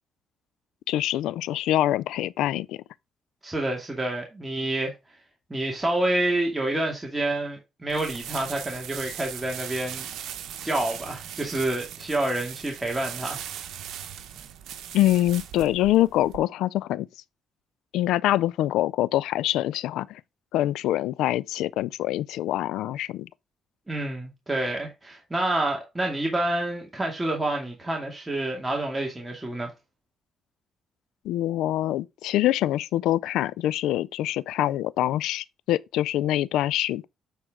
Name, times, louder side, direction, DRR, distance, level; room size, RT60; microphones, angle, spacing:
voice 1, 0.9-2.8 14.9-17.1 17.9-20.2 20.5-23.3 31.3-37.1, left 14 dB, 90° left, 0.3 m, -25 dB
voice 2, 3.4-4.9 5.5-10.1 10.6-13.4 23.9-29.7, right 1 dB, 15° right, 2.3 m, -28 dB
sound 1, 7.9-16.4, right 10 dB, 80° right, 1.0 m, -39 dB
9.2 x 4.5 x 3.6 m
cardioid pair, 90°, 0 cm